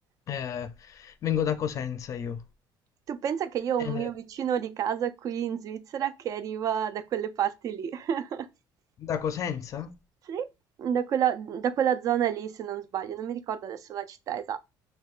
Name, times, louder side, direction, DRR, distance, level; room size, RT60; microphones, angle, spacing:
voice 1, 0.3-2.4 3.8-4.1 9.0-9.9, left 9 dB, 40° left, 0.5 m, -31 dB
voice 2, 3.1-8.5 10.3-10.5 10.8-14.6, right 9 dB, 40° right, 0.4 m, -29 dB
6.3 x 2.2 x 2.4 m
cardioid pair, 150°, 9 cm